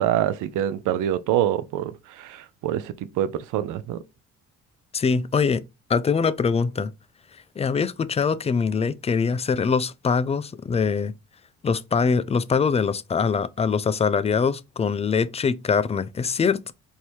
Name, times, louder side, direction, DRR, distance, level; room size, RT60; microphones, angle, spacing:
voice 1, 0.0-4.0, right 11 dB, 90° right, 0.5 m, -25 dB
voice 2, 4.9-5.6 5.9-6.9 7.6-11.1 11.6-16.7, left 5 dB, 20° left, 0.3 m, -23 dB
4.4 x 2.8 x 3.2 m
cardioid pair, 90°, 30 cm